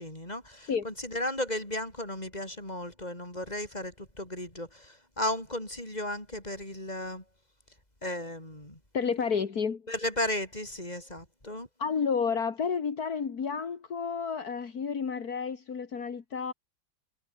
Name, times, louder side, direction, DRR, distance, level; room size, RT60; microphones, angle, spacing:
voice 1, 0.0-7.2 8.0-8.8 9.9-11.7, left 1 dB, 25° left, 7.8 m, -35 dB
voice 2, 8.9-9.9 11.8-16.5, left 6 dB, 70° left, 2.4 m, -30 dB
omnidirectional pair, 1.7 m